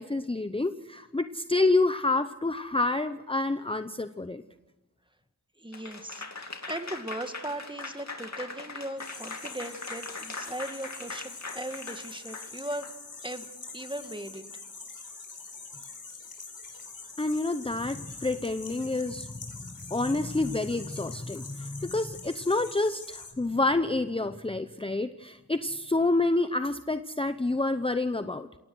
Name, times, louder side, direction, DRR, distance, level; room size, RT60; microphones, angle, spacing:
voice 1, 0.0-4.4 17.2-19.3 19.6-28.5, left 2 dB, 15° left, 10 dB, 0.8 m, -28 dB
voice 2, 5.6-12.9 13.2-13.5 13.7-14.4, right 1 dB, 15° right, 8 dB, 1.8 m, -38 dB
Applause / Crowd, 5.7-12.9, left 3 dB, 45° left, 2.7 m, -41 dB
sound 1, 9.0-23.3, left 4 dB, 65° left, 4.7 m, -44 dB
29.0 x 17.5 x 6.3 m, 1.0 s
wide cardioid pair, 65°, 37 cm